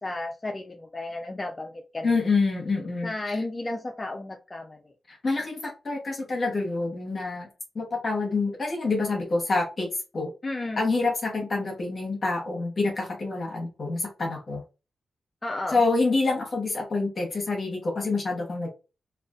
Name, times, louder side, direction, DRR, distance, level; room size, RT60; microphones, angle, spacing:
voice 1, 0.0-2.1 3.0-4.8 10.4-10.8 15.4-15.8, left 2 dB, 30° left, 3 dB, 0.4 m, -33 dB
voice 2, 2.0-3.4 5.1-7.5 7.7-9.9 10.1-10.3 10.8-14.6 15.7-18.7, left 3 dB, 50° left, 1 dB, 0.9 m, -27 dB
2.5 x 2.3 x 2.3 m, 0.30 s
cardioid pair, 65°, 0 cm